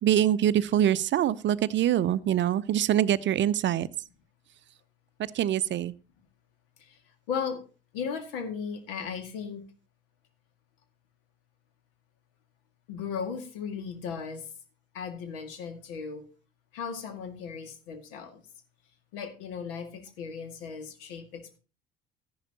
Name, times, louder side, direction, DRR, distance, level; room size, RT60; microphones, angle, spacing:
voice 1, 0.0-3.9 5.3-5.9, right 11 dB, 40° right, 17 dB, 0.6 m, -24 dB
voice 2, 7.3-7.6 7.9-9.6 12.9-14.4 14.9-16.2 16.7-18.4 19.1-21.6, left 6 dB, 75° left, 7 dB, 2.1 m, -36 dB
13.5 x 11.0 x 2.9 m, 0.33 s
hypercardioid pair, 65°, 29 cm